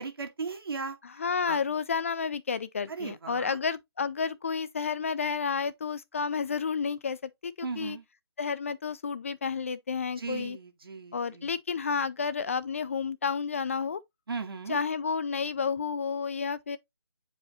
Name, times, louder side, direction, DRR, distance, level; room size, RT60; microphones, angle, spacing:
voice 1, 0.0-1.0 1.5-1.6 2.9-3.6 7.6-8.0 10.2-11.5 14.3-14.8, right 4 dB, 60° right, 1.9 m, -37 dB
voice 2, 1.0-8.0 8.4-10.6 11.1-14.0 14.7-16.8, left 5 dB, 30° left, 0.4 m, -31 dB
8.2 x 4.9 x 2.7 m
figure-of-eight pair, 160°, 13 cm